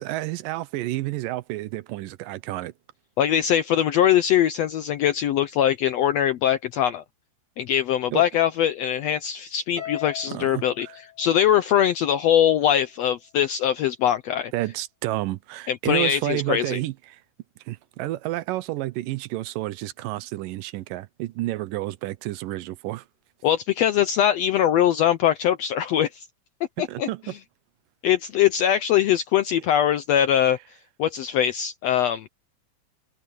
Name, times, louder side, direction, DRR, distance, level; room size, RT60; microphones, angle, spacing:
voice 1, 0.0-2.7 8.1-8.2 10.3-11.0 14.5-17.2 17.7-23.0 26.8-27.3, right 16 dB, 85° right, 2.4 m, -30 dB
voice 2, 3.2-7.0 7.6-10.9 11.2-14.5 15.7-16.8 23.4-26.3 26.8-27.1 28.0-30.6 31.0-32.3, left 10 dB, 75° left, 1.5 m, -22 dB
Harp, 9.8-12.2, left 10 dB, 65° right, 8.9 m, -40 dB
open air
omnidirectional pair, 3.8 m